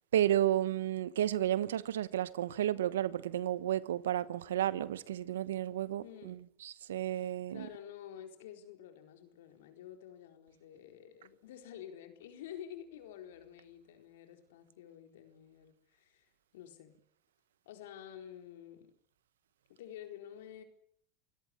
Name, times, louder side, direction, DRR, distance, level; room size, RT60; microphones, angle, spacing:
voice 1, 0.1-7.7, right 12 dB, 90° right, 1.1 m, -32 dB
voice 2, 6.0-6.4 7.1-16.9 17.7-18.9 19.7-20.6, left 10 dB, 80° left, 4.3 m, -50 dB
27.5 x 17.0 x 9.7 m
hypercardioid pair, 100°, 0 cm